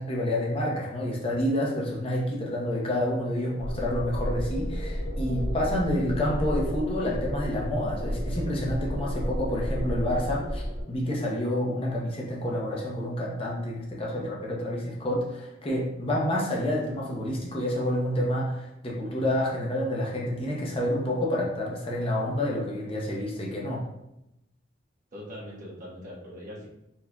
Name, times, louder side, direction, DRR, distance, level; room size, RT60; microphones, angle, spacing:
voice 1, 0.0-23.8, left 1 dB, 30° left, -3 dB, 0.8 m, -28 dB
sound 1, 3.6-10.8, equal, 15° left, 1.4 m, -32 dB
voice 2, 25.1-26.7, equal, 45° right, -5 dB, 1.2 m, -41 dB
4.5 x 4.3 x 2.2 m, 0.87 s
head